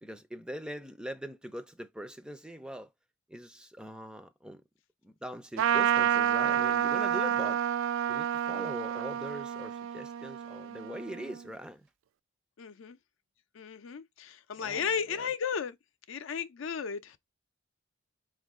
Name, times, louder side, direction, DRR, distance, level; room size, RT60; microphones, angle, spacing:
voice 1, 0.0-2.9 3.3-4.6 5.0-7.6 8.1-11.9 14.6-15.3, equal, 5° right, 0.4 m, -42 dB
Trumpet, 5.6-11.4, right 9 dB, 75° right, 0.3 m, -29 dB
voice 2, 12.6-13.0 13.5-15.8 16.1-17.2, left 7 dB, 75° left, 0.5 m, -34 dB
4.4 x 2.4 x 3.5 m
head